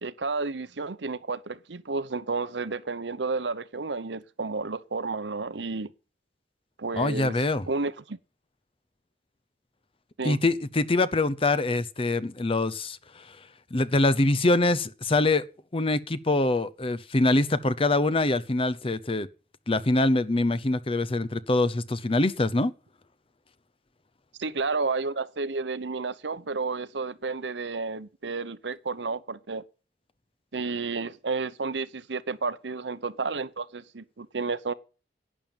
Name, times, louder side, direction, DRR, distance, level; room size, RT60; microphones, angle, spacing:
voice 1, 0.0-5.9 6.8-7.4 7.7-8.2 10.2-10.4 24.4-29.6 30.5-34.7, right 4 dB, 85° right, 0.9 m, -31 dB
voice 2, 7.0-7.7 10.2-13.4 13.7-15.5 15.7-19.3 19.7-22.7, left 2 dB, 30° left, 0.8 m, -24 dB
11.5 x 8.9 x 9.0 m
head